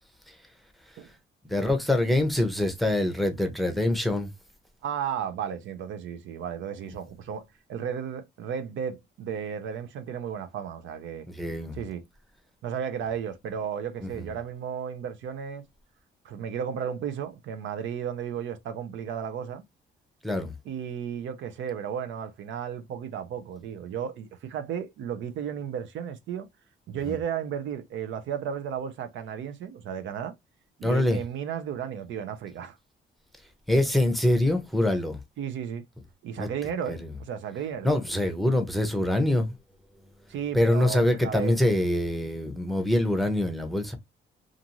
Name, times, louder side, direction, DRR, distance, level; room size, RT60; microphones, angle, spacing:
voice 1, 1.4-4.3 11.3-11.8 14.0-14.3 20.2-20.6 27.0-27.2 30.8-31.2 33.7-35.2 36.4-36.5 36.9-37.1 37.8-39.5 40.5-44.0, left 1 dB, ahead, 0.7 m, -25 dB
voice 2, 4.8-11.3 11.7-12.0 12.6-15.6 16.2-19.6 20.7-26.5 26.9-30.3 30.8-32.8 35.4-35.8 36.2-37.9 40.3-41.5, right 8 dB, 75° right, 0.5 m, -34 dB
2.5 x 2.5 x 2.8 m
cardioid pair, 90°, 20 cm